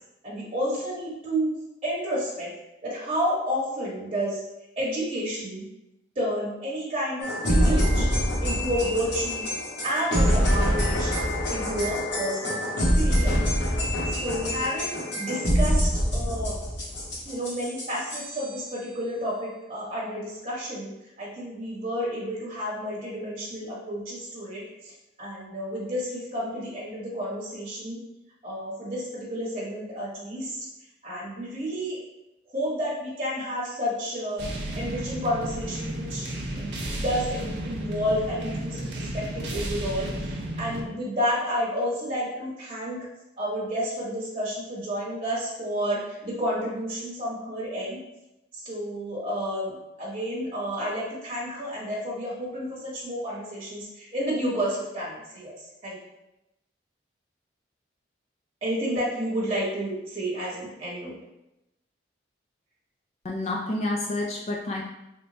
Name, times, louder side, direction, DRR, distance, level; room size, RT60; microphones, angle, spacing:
voice 1, 0.2-1.5 1.8-2.5 2.8-4.4 4.8-5.6 6.1-8.1 8.4-9.5 9.8-11.1 11.5-12.6 12.9-13.4 14.0-16.5 17.2-20.9 21.2-24.9 25.2-28.0 28.4-30.7 31.0-32.0 32.5-34.4 34.7-36.3 36.6-43.0 43.4-48.0 48.5-55.5 55.8-56.0 58.6-61.1, equal, 30° right, -7 dB, 1.1 m, -30 dB
sound 1, 7.2-18.6, equal, 65° left, 0.9 m, -25 dB
sound 2, 34.4-40.8, right 1 dB, 65° right, 0.5 m, -33 dB
voice 2, 63.2-64.8, left 2 dB, 35° left, -2 dB, 0.4 m, -29 dB
3.4 x 2.2 x 3.8 m, 0.91 s
head